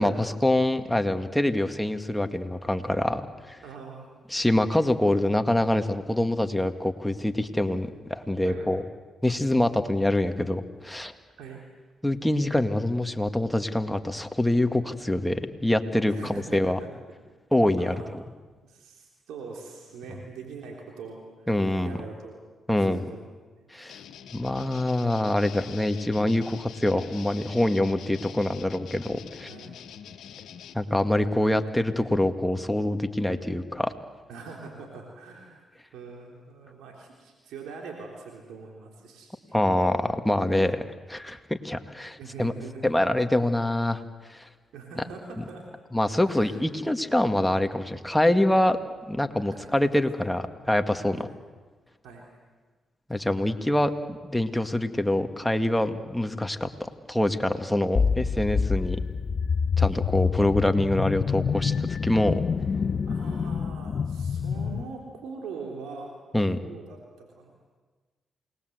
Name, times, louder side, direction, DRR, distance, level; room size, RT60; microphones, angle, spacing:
voice 1, 0.0-3.6 4.3-8.8 9.2-11.1 12.0-16.8 17.5-18.2 21.5-22.0 22.7-23.1 23.7-24.0 24.3-29.5 30.7-33.9 39.5-40.8 41.1-42.5 42.8-44.0 44.3-44.4 45.0-45.1 45.4-45.5 45.9-48.8 49.1-51.3 53.1-59.0 59.8-62.4 66.3-66.6, left 1 dB, 5° left, 7 dB, 2.0 m, -25 dB
voice 2, 3.6-4.1 8.4-8.7 11.4-11.6 16.1-16.9 17.8-18.1 18.6-21.2 21.8-22.4 22.8-23.7 29.5-29.7 34.3-35.6 35.9-39.3 42.2-42.9 44.7-45.6 46.2-46.6 49.5-49.8 51.1-51.2 52.0-52.2 63.1-66.1 66.6-67.5, right 4 dB, 85° right, 0 dB, 3.5 m, -42 dB
sound 1, 23.9-30.7, left 8 dB, 75° left, 1.6 m, -45 dB
sound 2, 57.9-64.8, left 6 dB, 55° left, 0.9 m, -27 dB
28.5 x 20.0 x 8.0 m, 1.3 s
supercardioid pair, 55°, 0 cm